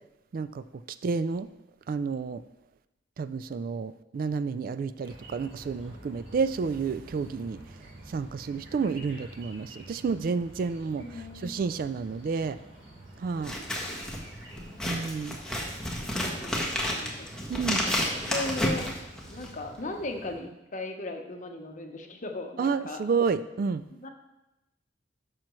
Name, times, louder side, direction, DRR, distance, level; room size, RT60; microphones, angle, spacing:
voice 1, 0.3-0.6 1.0-1.5 1.9-2.4 3.2-7.6 8.1-11.0 11.4-12.6 13.2-13.6 14.8-15.4 17.5-17.9 22.6-23.8, right 5 dB, 50° right, 14 dB, 0.3 m, -30 dB
sound 1, 5.0-20.4, right 1 dB, 80° right, 3.5 m, -49 dB
voice 2, 11.0-11.6 16.4-19.0 19.3-23.0 23.9-24.1, left 2 dB, 45° left, 4 dB, 0.9 m, -38 dB
Scissors, 13.4-19.6, left 1 dB, 5° left, 1.2 m, -31 dB
11.5 x 6.3 x 3.1 m, 0.93 s
head